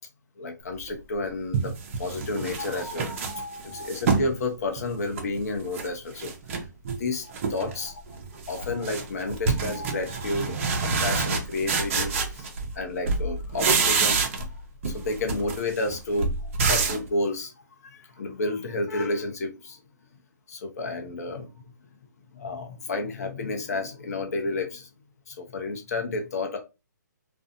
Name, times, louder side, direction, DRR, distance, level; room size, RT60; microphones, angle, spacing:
voice 1, 0.4-1.7 2.0-6.3 7.0-8.0 8.5-12.5 12.8-14.5 14.9-16.3 16.7-17.5 17.8-19.8 20.5-21.5 22.3-24.9 25.3-26.6, left 2 dB, 55° left, 0.8 m, -31 dB
sound 1, 0.9-1.0 1.5-4.3 4.8-5.9 6.2-7.0 7.3-7.8 8.1-12.8 13.1-14.6 14.8-17.1, right 4 dB, 40° right, 0.6 m, -27 dB
2.5 x 2.3 x 2.6 m
hypercardioid pair, 150°, 10 cm